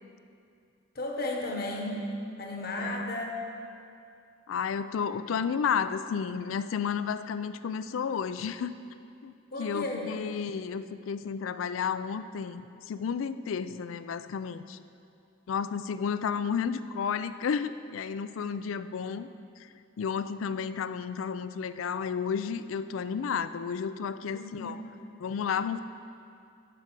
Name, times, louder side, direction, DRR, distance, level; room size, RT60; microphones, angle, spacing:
voice 1, 0.9-2.0 2.4-3.5 9.5-10.1 24.2-24.8, left 2 dB, 50° left, 0 dB, 1.0 m, -34 dB
voice 2, 4.5-8.7 9.2-9.3 9.6-14.8 15.5-19.3 19.6-19.7 20.0-24.8 25.2-25.8, left 6 dB, 85° left, 13 dB, 0.4 m, -32 dB
9.7 x 5.1 x 7.4 m, 2.5 s
head